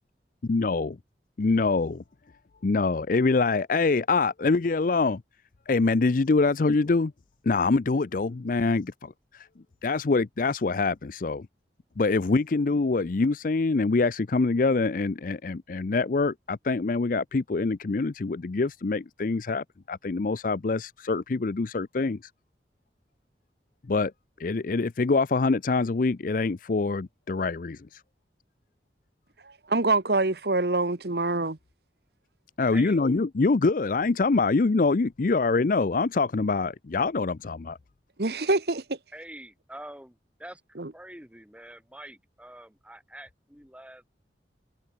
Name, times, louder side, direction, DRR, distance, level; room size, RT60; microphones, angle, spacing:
voice 1, 0.5-0.9 1.4-2.0 2.6-5.2 5.7-7.1 7.5-9.5 9.8-11.5 12.0-22.2 23.9-24.1 24.4-28.0 32.6-37.8, left 3 dB, 50° left, 0.5 m, -25 dB
voice 2, 29.7-31.6 38.2-39.0 40.8-40.9, right 2 dB, 60° right, 1.4 m, -25 dB
voice 3, 39.1-44.1, right 1 dB, 5° right, 7.9 m, -45 dB
head